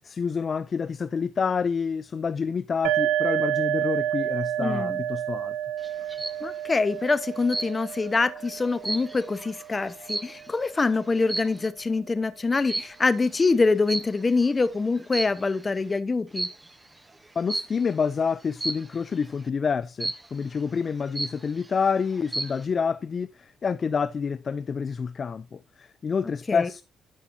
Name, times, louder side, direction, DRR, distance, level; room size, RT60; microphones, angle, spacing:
voice 1, 0.0-5.5 17.4-26.8, left 6 dB, 45° left, 0.3 m, -28 dB
sound 1, 2.8-10.3, right 11 dB, 80° right, 0.3 m, -30 dB
voice 2, 4.6-5.0 6.4-16.5 26.5-26.7, left 3 dB, 30° left, 0.9 m, -25 dB
sound 2, 5.8-6.4 7.5-8.0 8.4-10.7 11.2-11.7 12.7-13.1 13.9-14.5 15.0-15.6 16.3-16.7 17.5-17.9 18.6-19.0 20.0-20.5 20.9-21.0 21.1-21.7 22.1-22.6, right 2 dB, 20° right, 0.8 m, -33 dB
12.5 x 5.5 x 2.7 m
supercardioid pair, 55°, 0 cm